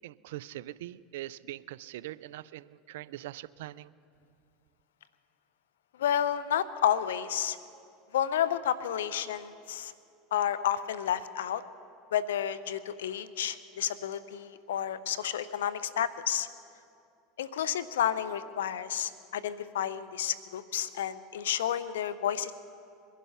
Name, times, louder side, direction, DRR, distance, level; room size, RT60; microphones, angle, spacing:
voice 1, 0.0-3.9, right 15 dB, 75° right, 19 dB, 0.4 m, -42 dB
voice 2, 6.0-7.6 8.1-9.9 10.3-11.6 12.1-16.5 17.4-22.5, left 10 dB, 85° left, 14 dB, 0.6 m, -31 dB
22.0 x 11.0 x 5.6 m, 2.5 s
hypercardioid pair, 90°, 0 cm